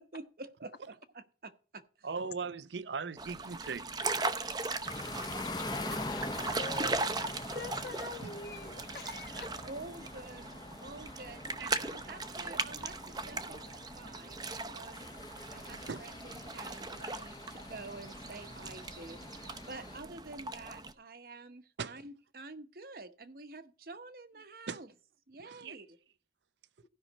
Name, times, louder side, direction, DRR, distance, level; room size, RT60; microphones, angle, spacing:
voice 1, 0.0-2.1 9.6-11.4 11.8-14.4 14.7-15.0 15.5-19.2 19.7-24.9 25.3-26.0, right 3 dB, 55° right, 0.9 m, -48 dB
voice 2, 2.0-3.9 4.8-4.9 5.9-6.0 11.6-11.7 15.9-16.0 21.8-22.0 24.7-24.8 25.4-25.8, right 5 dB, 80° right, 0.6 m, -39 dB
sound 1, 3.2-20.9, right 3 dB, 20° right, 0.7 m, -39 dB
sound 2, 4.8-20.0, left 2 dB, 25° left, 0.8 m, -44 dB
voice 3, 5.7-6.3 6.6-9.5 24.3-24.4, left 3 dB, 65° left, 1.3 m, -46 dB
15.5 x 5.6 x 4.1 m
head